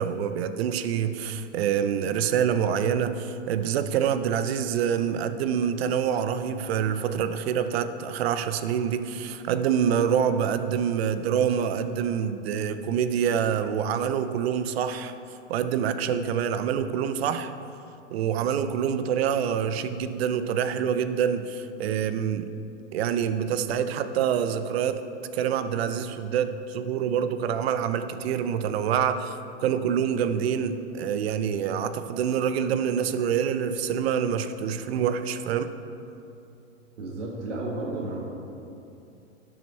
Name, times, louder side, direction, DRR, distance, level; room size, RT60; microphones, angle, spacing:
voice 1, 0.0-15.1 15.5-17.5 18.1-22.5 22.9-25.0 25.3-35.7, right 8 dB, 55° right, 11 dB, 0.7 m, -26 dB
voice 2, 37.0-38.2, right 2 dB, 70° right, -3 dB, 2.0 m, -32 dB
12.0 x 6.5 x 4.5 m, 2.7 s
hypercardioid pair, 120°, 36 cm